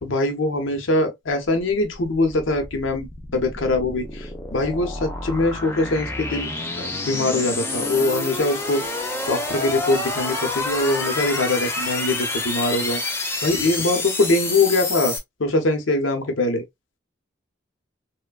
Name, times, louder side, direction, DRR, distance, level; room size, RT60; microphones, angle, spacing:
voice 1, 0.0-3.1 3.3-6.5 6.8-8.8 9.3-16.6, left 2 dB, 85° left, 0.8 m, -23 dB
sound 1, 1.7-15.2, left 2 dB, 15° left, 0.4 m, -28 dB
3.0 x 2.1 x 2.3 m
head